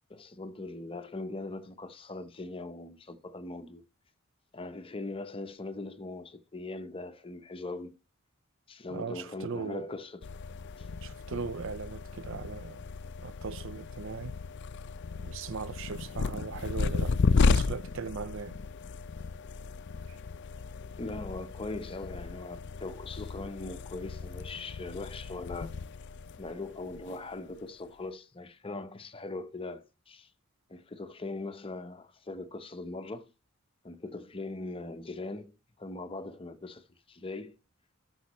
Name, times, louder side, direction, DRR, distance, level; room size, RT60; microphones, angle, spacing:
voice 1, 0.1-3.8 4.5-8.0 8.7-10.2 10.8-10.9 21.0-25.7 26.4-30.3 30.7-33.3 33.8-37.5, left 2 dB, 25° left, 0.8 m, -40 dB
voice 2, 8.9-9.9 11.0-12.8 13.2-14.4 15.2-18.6 20.1-20.2, right 5 dB, 65° right, 0.5 m, -39 dB
sound 1, 10.2-27.6, left 4 dB, 55° left, 0.5 m, -34 dB
12.5 x 6.2 x 3.0 m
head